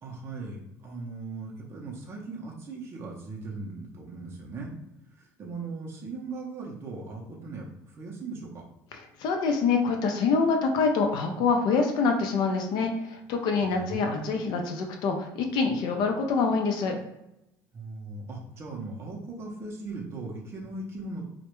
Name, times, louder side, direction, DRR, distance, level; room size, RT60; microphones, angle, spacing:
voice 1, 0.0-4.8 5.1-7.7 7.9-8.6 13.6-14.3 17.7-21.2, right 3 dB, 30° right, -2 dB, 0.5 m, -39 dB
voice 2, 9.2-16.9, left 4 dB, 60° left, 3 dB, 0.4 m, -25 dB
2.2 x 2.1 x 2.9 m, 0.88 s
cardioid pair, 125°, 8 cm